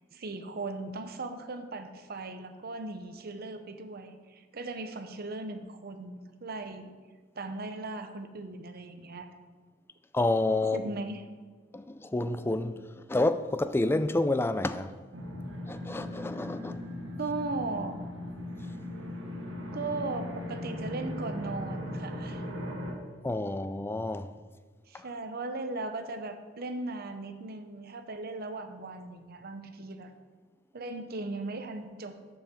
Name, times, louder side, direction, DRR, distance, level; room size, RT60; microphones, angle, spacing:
voice 1, 0.1-6.9 7.3-9.3 10.6-11.2 17.2-18.0 19.7-22.4 24.9-30.1 30.7-32.2, right 3 dB, 55° right, 0.7 m, -38 dB
voice 2, 10.1-10.8 11.7-14.9 15.7-16.8 23.2-24.3 24.9-25.1, left 2 dB, 10° left, 0.3 m, -29 dB
sound 1, 15.1-22.9, left 1 dB, 85° right, 1.6 m, -38 dB
7.3 x 5.6 x 6.7 m
head